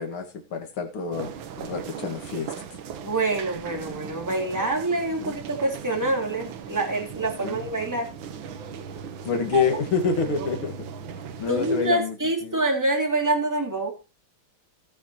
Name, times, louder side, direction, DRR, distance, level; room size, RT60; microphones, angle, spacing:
voice 1, 0.0-2.5 5.2-5.4 7.4-7.6 9.2-10.9 11.4-12.2 12.4-12.6, left 5 dB, 80° left, 2.7 m, -27 dB
sound 1, 1.1-11.9, right 7 dB, 70° right, 1.7 m, -38 dB
voice 2, 3.0-8.1 9.5-9.7 11.5-13.9, right 2 dB, 10° right, 2.4 m, -26 dB
18.5 x 7.3 x 2.9 m
omnidirectional pair, 2.3 m